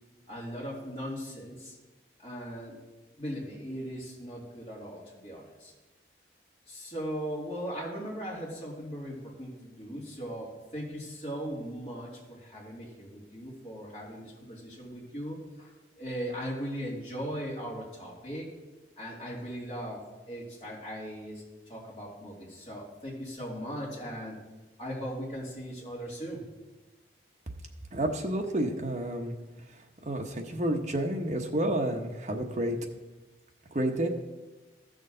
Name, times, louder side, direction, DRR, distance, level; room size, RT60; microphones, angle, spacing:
voice 1, 0.3-1.7 2.2-2.8 3.2-5.7 6.7-18.5 19.0-24.4 24.8-26.4, equal, 35° left, -6 dB, 2.8 m, -38 dB
voice 2, 27.9-29.3 29.7-32.8 33.7-34.1, right 1 dB, 40° right, 3 dB, 0.9 m, -30 dB
14.5 x 6.4 x 3.9 m, 1.2 s
head